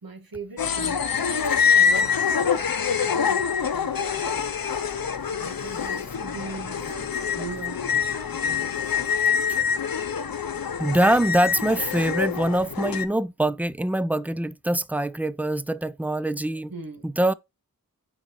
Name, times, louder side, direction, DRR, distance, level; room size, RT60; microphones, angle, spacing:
voice 1, 0.0-2.6 3.8-4.5 5.3-9.5 16.7-17.0, right 3 dB, 75° right, 1.9 m, -41 dB
sound 1, 0.6-13.1, left 7 dB, 75° left, 0.8 m, -25 dB
voice 2, 10.8-16.7 17.0-17.3, right 1 dB, 5° right, 0.4 m, -24 dB
9.7 x 4.1 x 3.1 m
wide cardioid pair, 50°, 35 cm